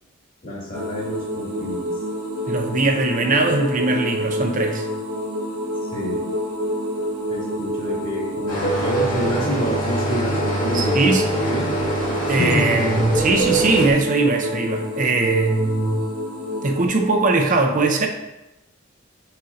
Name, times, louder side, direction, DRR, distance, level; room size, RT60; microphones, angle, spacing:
voice 1, 0.4-1.9 5.9-6.2 7.3-11.7 12.2-12.8, left 1 dB, 40° left, -5 dB, 2.1 m, -27 dB
sound 1, 0.7-16.9, equal, 85° right, 1.1 m, -29 dB
voice 2, 2.5-4.9 10.7-11.2 12.3-16.1 16.6-18.1, right 3 dB, 35° right, 4 dB, 0.6 m, -20 dB
sound 2, 8.5-13.9, right 2 dB, 90° left, 2.2 m, -24 dB
6.5 x 5.5 x 2.6 m, 0.97 s
head